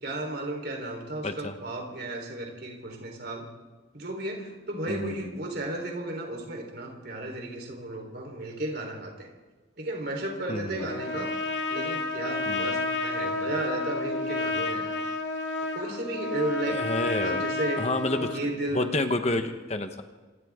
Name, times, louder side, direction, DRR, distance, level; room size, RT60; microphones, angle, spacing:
voice 1, 0.0-3.4 3.9-9.3 9.8-11.3 11.7-15.0 15.7-16.8 17.2-17.8 18.2-18.9, right 1 dB, 55° right, 1 dB, 4.0 m, -34 dB
voice 2, 1.2-1.6 4.9-5.2 10.5-10.9 11.2-11.3 12.4-12.7 16.7-17.4 17.8-20.0, left 2 dB, 35° left, 7 dB, 1.1 m, -30 dB
Trumpet, 10.8-18.4, left 2 dB, 65° left, 2.4 m, -30 dB
27.0 x 26.5 x 3.7 m, 1.2 s
head